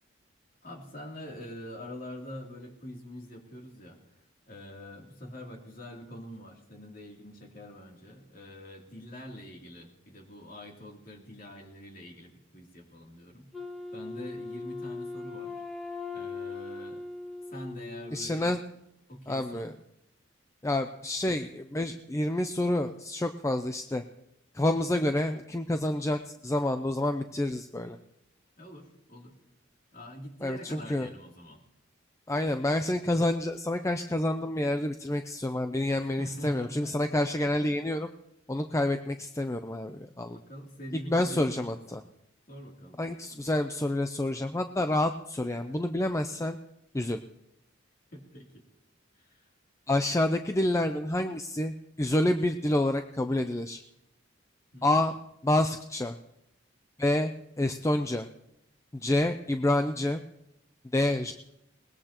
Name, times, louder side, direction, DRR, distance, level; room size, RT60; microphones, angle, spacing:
voice 1, 0.6-4.0 4.5-13.5 13.9-15.6 16.1-17.1 17.5-18.6 19.1-19.7 28.6-29.4 29.9-31.6 35.9-37.0 40.3-42.0 42.5-43.0 48.1-48.6 49.1-49.5 54.7-55.0, equal, 45° left, -1 dB, 3.1 m, -45 dB
Wind instrument woodwind instrument, 13.5-18.5, left 3 dB, ahead, 1.5 m, -39 dB
voice 2, 18.1-18.6 19.3-19.7 20.6-24.0 24.5-28.0 30.4-31.1 32.3-38.1 38.5-40.4 41.1-42.0 43.0-46.6 46.9-47.2 49.9-53.8 54.8-55.1 55.4-56.2 57.0-57.3 57.6-58.3 58.9-60.2 60.9-61.3, left 1 dB, 15° left, 7 dB, 0.5 m, -28 dB
21.0 x 20.0 x 3.0 m, 0.83 s
head